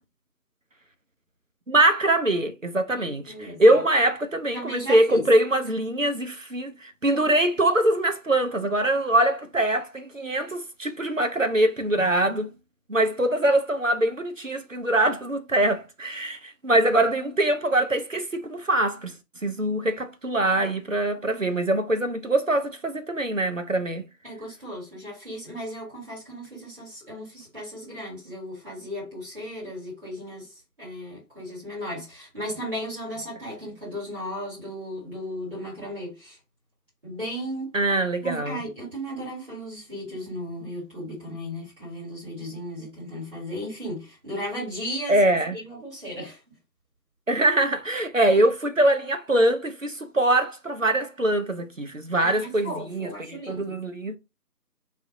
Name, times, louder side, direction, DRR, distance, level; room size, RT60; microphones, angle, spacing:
voice 1, 1.7-12.5 12.9-19.1 19.4-24.1 37.7-38.6 45.1-45.6 47.3-54.2, right 1 dB, 50° right, 0.5 m, -23 dB
voice 2, 2.9-3.8 4.5-5.2 12.0-12.1 24.2-30.5 30.8-36.4 37.0-37.7 38.2-45.2 45.5-46.4 52.2-53.8, equal, 35° right, 2.2 m, -35 dB
3.4 x 2.6 x 3.7 m
figure-of-eight pair, 175°, 50 cm